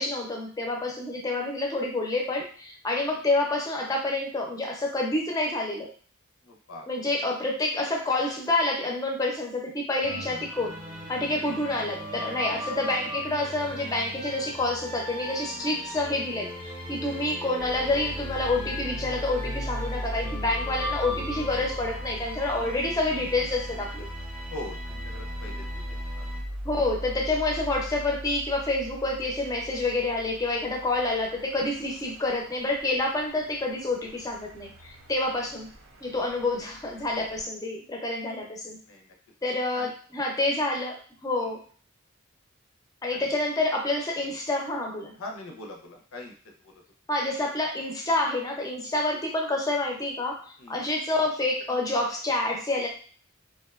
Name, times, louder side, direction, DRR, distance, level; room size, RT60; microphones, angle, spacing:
voice 1, 0.0-5.9 6.9-10.8 11.1-24.1 26.6-35.7 36.0-38.8 39.4-41.6 43.0-45.1 47.1-52.9, left 2 dB, 15° left, 0 dB, 0.4 m, -28 dB
voice 2, 6.4-6.9 11.3-11.4 17.0-17.4 24.5-26.2 31.7-31.8 38.9-39.1 39.7-39.9 43.1-43.3 45.2-46.3 46.6-46.8 50.6-50.8, left 2 dB, 80° left, 2 dB, 0.5 m, -42 dB
sound 1, 10.0-26.4, equal, 25° right, 0.6 m, -39 dB
sound 2, 17.6-37.5, equal, 80° right, 0.5 m, -39 dB
2.6 x 2.1 x 2.3 m, 0.43 s
head